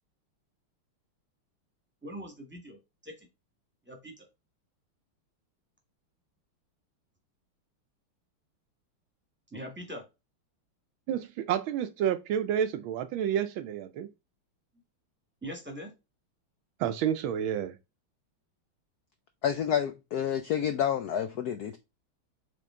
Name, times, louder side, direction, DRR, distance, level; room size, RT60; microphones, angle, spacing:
voice 1, 2.0-2.8 3.0-3.3 3.9-4.2 9.5-10.0 15.4-15.9, equal, 5° right, 1.2 m, -41 dB
voice 2, 11.1-14.1 16.8-17.7, right 9 dB, 75° right, 1.3 m, -29 dB
voice 3, 19.4-21.8, left 9 dB, 85° left, 0.8 m, -29 dB
7.7 x 3.6 x 3.7 m
omnidirectional pair, 2.4 m